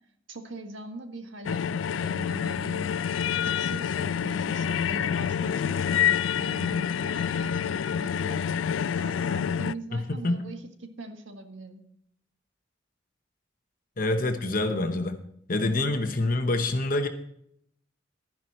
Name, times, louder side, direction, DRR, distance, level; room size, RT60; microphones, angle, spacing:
voice 1, 0.3-3.0 3.5-8.4 8.9-11.8, right 2 dB, 75° right, 1.6 m, -41 dB
sound 1, 1.4-9.7, left 8 dB, 80° left, 0.3 m, -27 dB
voice 2, 9.9-10.4 14.0-15.2 15.5-17.1, left 2 dB, 45° left, 0.9 m, -26 dB
12.0 x 10.5 x 4.3 m
head